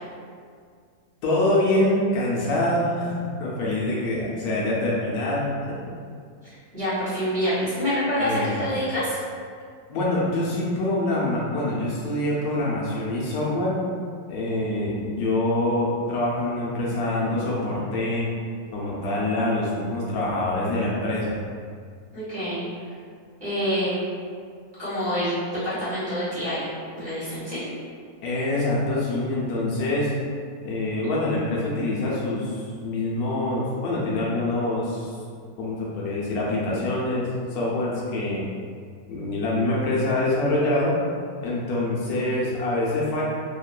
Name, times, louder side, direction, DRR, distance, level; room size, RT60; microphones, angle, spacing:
voice 1, 1.2-5.7 8.2-8.7 9.9-13.8 14.3-18.3 18.7-21.4 28.2-30.1 30.6-35.1 35.6-38.4 39.1-41.0 41.4-43.2, left 1 dB, 75° left, -5 dB, 1.0 m, -25 dB
voice 2, 6.4-9.2 22.1-22.6 23.4-24.0 24.8-26.7 26.9-27.6, equal, 35° right, -13 dB, 0.9 m, -27 dB
3.1 x 2.1 x 2.2 m, 2.1 s
omnidirectional pair, 1.7 m